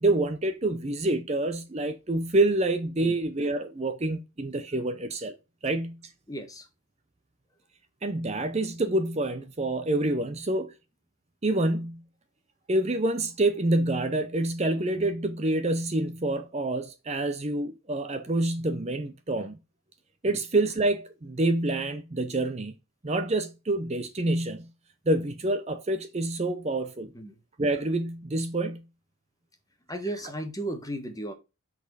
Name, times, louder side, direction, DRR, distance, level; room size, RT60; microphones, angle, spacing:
voice 1, 0.0-5.3 5.6-6.0 8.0-10.7 11.4-12.0 12.7-19.6 20.2-22.7 23.0-24.7 25.1-27.1 27.6-28.8, right 2 dB, 30° right, 0.6 m, -27 dB
voice 2, 6.3-6.7 20.3-20.4 27.1-27.4 29.9-31.3, right 1 dB, 15° left, 1.3 m, -35 dB
7.8 x 4.2 x 4.7 m
head